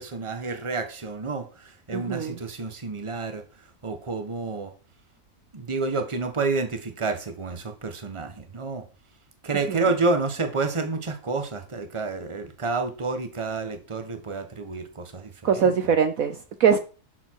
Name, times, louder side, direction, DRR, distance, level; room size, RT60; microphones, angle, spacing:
voice 1, 0.0-3.4 3.8-4.7 5.5-8.9 9.4-15.7, right 3 dB, 20° right, 1.3 m, -29 dB
voice 2, 1.9-2.4 9.7-9.8 15.4-16.8, right 6 dB, 60° right, 1.2 m, -22 dB
10.0 x 7.0 x 4.7 m
omnidirectional pair, 1.7 m